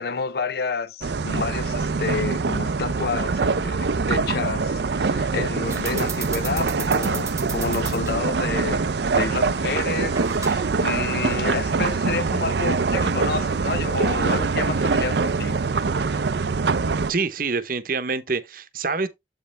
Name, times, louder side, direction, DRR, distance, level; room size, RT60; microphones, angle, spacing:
voice 1, 0.0-15.6 16.0-16.2, left 4 dB, 55° left, 0.5 m, -29 dB
sound 1, 1.0-17.1, right 4 dB, 65° right, 0.5 m, -24 dB
sound 2, 5.6-15.7, right 5 dB, 15° right, 0.9 m, -39 dB
voice 2, 17.1-19.1, right 4 dB, 50° right, 0.9 m, -26 dB
8.0 x 5.3 x 3.3 m
head